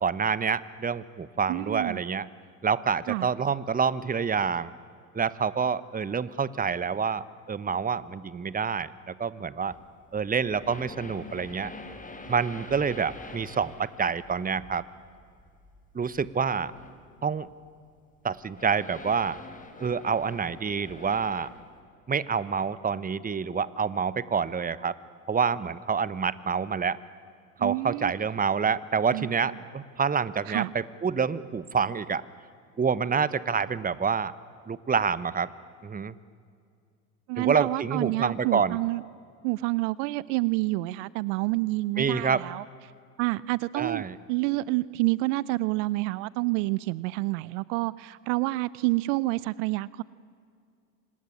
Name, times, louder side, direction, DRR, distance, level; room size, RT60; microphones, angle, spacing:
voice 1, 0.0-2.3 2.6-4.7 5.1-9.8 10.1-11.7 12.3-14.8 15.9-16.7 17.2-17.5 18.2-19.4 19.8-21.5 22.1-25.0 25.3-27.0 27.6-32.2 32.8-34.3 34.7-35.5 35.8-36.1 37.4-38.8 42.0-42.4 43.7-44.2, right 6 dB, 20° right, 18 dB, 1.1 m, -27 dB
voice 2, 1.5-2.0 3.1-3.3 27.6-28.1 29.1-29.3 30.5-30.7 37.3-39.0 39.4-42.6 43.2-50.0, right 21 dB, 70° right, 21 dB, 0.6 m, -28 dB
sound 1, 9.7-17.1 17.5-17.7 18.4-21.7, left 2 dB, 20° left, 3.8 m, -46 dB
26.0 x 20.0 x 9.9 m, 2.3 s
hypercardioid pair, 65°, 38 cm